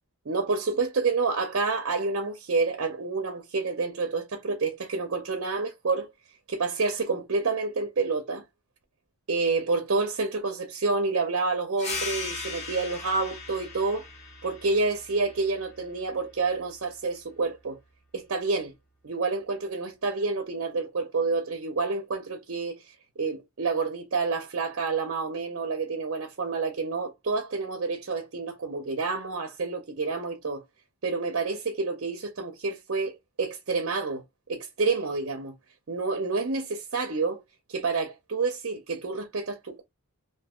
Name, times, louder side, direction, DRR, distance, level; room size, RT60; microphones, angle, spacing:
voice 1, 0.3-6.1 6.5-8.4 9.3-14.1 14.4-17.8 18.1-18.7 19.0-30.6 31.0-34.2 34.5-35.6 35.9-37.4 37.7-39.8, right 4 dB, 60° right, 0.6 m, -28 dB
sound 1, 11.8-16.9, left 3 dB, 30° left, 0.7 m, -39 dB
2.7 x 2.1 x 3.6 m
head